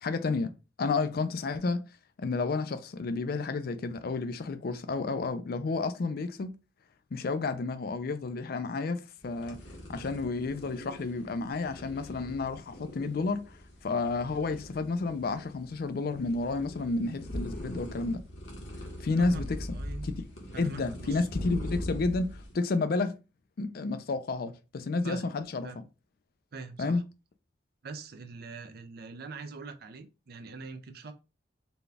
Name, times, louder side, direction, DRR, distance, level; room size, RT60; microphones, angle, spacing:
voice 1, 0.0-0.5 0.8-1.8 2.2-6.5 7.1-9.6 9.9-13.6 13.8-18.2 19.0-19.8 20.0-20.1 20.6-23.2 23.6-25.7 26.8-27.0, left 3 dB, 55° left, 0.4 m, -31 dB
sound 1, 9.2-22.5, equal, 70° left, 1.0 m, -41 dB
voice 2, 19.2-20.1 20.5-21.3 25.0-25.3 25.6-25.8 26.5-27.0 27.8-31.1, right 4 dB, 60° right, 0.5 m, -43 dB
4.1 x 2.3 x 3.3 m
head